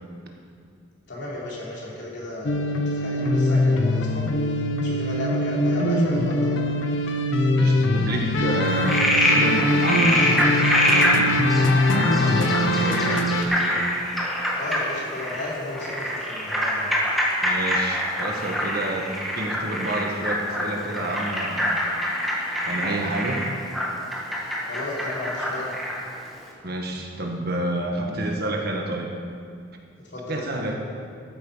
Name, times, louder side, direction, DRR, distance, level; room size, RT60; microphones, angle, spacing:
voice 1, 1.1-6.7 14.5-16.9 24.7-25.7 30.0-30.8, left 2 dB, 60° left, -5 dB, 3.5 m, -34 dB
sound 1, 2.4-13.4, left 1 dB, 75° left, 0.9 m, -22 dB
voice 2, 7.5-10.5 10.9-11.6 11.9-13.8 17.4-19.1 19.3-21.8 22.6-23.5 26.6-29.1 30.3-30.7, right 1 dB, 55° right, 2 dB, 1.5 m, -29 dB
Frog, 8.6-26.1, equal, ahead, 1.7 m, -25 dB
14.0 x 8.9 x 5.5 m, 2.3 s
head